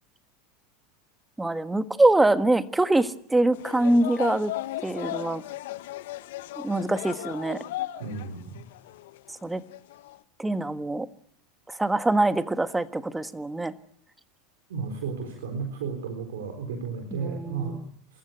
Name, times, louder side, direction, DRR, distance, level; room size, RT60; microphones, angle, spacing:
voice 1, 1.4-4.5 4.8-5.4 6.6-7.6 9.4-9.6 10.4-11.1 11.7-13.7 17.1-17.9, right 2 dB, 10° right, 11 dB, 1.4 m, -24 dB
sound 1, 3.5-8.3 8.6-9.3 9.7-10.2, left 15 dB, 70° left, 1.0 m, -36 dB
voice 2, 8.0-8.6 14.7-17.8, right 5 dB, 75° right, 5 dB, 4.0 m, -33 dB
27.0 x 14.5 x 9.4 m, 0.67 s
hypercardioid pair, 90°, 0 cm